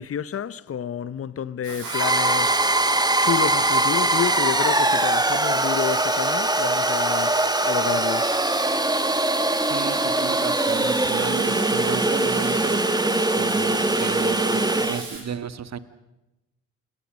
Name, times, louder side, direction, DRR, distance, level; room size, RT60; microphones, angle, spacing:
voice 1, 0.0-8.4, left 8 dB, 35° left, 1.0 m, -30 dB
Water tap faucet / Sink (filling or washing), 1.6-15.2, right 4 dB, 65° right, 7.7 m, -37 dB
sound 1, 1.8-15.0, right 2 dB, 10° right, 1.6 m, -22 dB
voice 2, 9.7-12.9 13.3-15.8, right 7 dB, 45° right, 1.5 m, -34 dB
28.5 x 20.0 x 6.5 m
hypercardioid pair, 40°, 38 cm